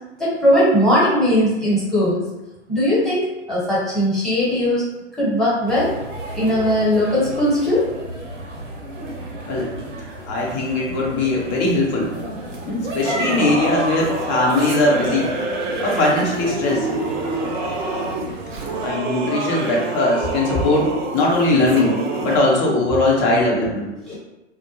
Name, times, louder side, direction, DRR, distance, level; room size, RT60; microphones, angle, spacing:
voice 1, 0.2-2.2 2.7-4.9 5.2-5.9 6.3-7.9 24.1-24.2, equal, ahead, -8 dB, 1.0 m, -19 dB
sound 1, 5.7-18.9, right 2 dB, 85° right, 0.7 m, -32 dB
voice 2, 10.3-12.1 12.6-15.3 15.8-16.9 18.8-23.9, left 2 dB, 35° left, -2 dB, 0.7 m, -20 dB
Singing / Musical instrument, 13.0-22.4, right 2 dB, 40° right, 0.5 m, -27 dB
2.3 x 2.1 x 2.9 m, 1.0 s
hypercardioid pair, 110°, 35 cm